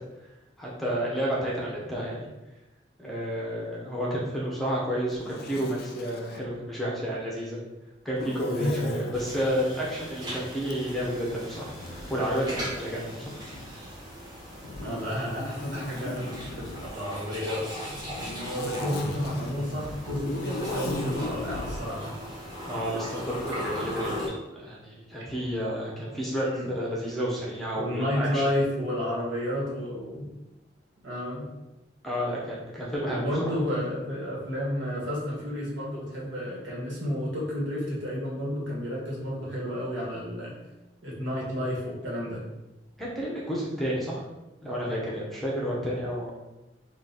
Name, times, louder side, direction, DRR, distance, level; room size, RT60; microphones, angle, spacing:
voice 1, 0.6-2.3 3.0-7.6 8.0-13.0 22.6-28.5 32.0-33.5 43.0-44.2 44.6-46.3, equal, ahead, -5 dB, 0.7 m, -31 dB
Zipper (clothing), 5.1-6.5 8.1-9.2 10.6-13.9 14.6-16.9 17.8-21.8, left 3 dB, 55° left, 0.3 m, -39 dB
sound 1, 9.1-24.3, equal, 20° right, 1.0 m, -38 dB
voice 2, 14.8-22.1 26.4-26.7 27.7-30.3 31.0-31.5 32.9-40.5 41.0-42.4, equal, 80° right, -4 dB, 1.4 m, -31 dB
3.8 x 2.4 x 3.9 m, 0.99 s
head